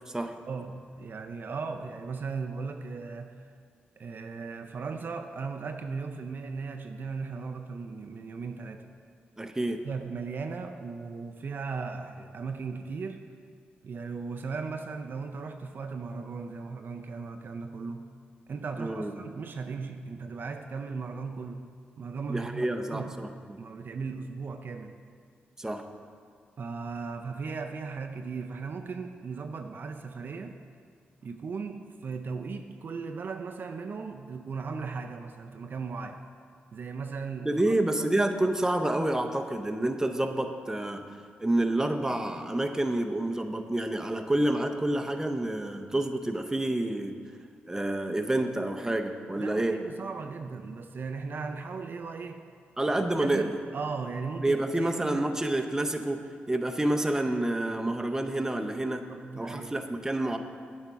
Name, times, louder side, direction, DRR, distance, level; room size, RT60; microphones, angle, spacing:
voice 1, 0.5-3.5 4.0-8.9 9.8-13.4 13.8-18.2 18.5-25.0 26.6-30.6 31.2-36.2 36.7-38.1 49.4-52.5 53.2-55.2 59.1-59.9, right 4 dB, 55° right, 5 dB, 0.4 m, -37 dB
voice 2, 9.4-9.8 18.8-19.1 22.3-23.6 25.6-25.8 37.4-41.0 41.4-47.2 47.7-49.8 52.8-53.5 54.4-59.1 59.4-60.4, right 1 dB, 15° right, 5 dB, 0.6 m, -28 dB
8.9 x 3.6 x 5.7 m, 2.1 s
supercardioid pair, 55°, 4 cm